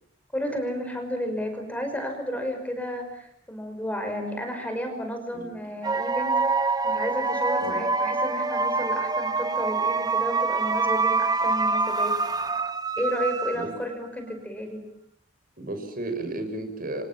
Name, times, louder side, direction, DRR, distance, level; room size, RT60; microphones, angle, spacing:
voice 1, 0.3-12.1 13.0-14.9, equal, 10° left, 5 dB, 5.5 m, -32 dB
sound 1, 5.8-13.9, right 3 dB, 20° right, 1.2 m, -25 dB
voice 2, 15.6-17.0, right 2 dB, 45° right, 6 dB, 6.1 m, -33 dB
29.5 x 27.0 x 7.5 m, 0.68 s
head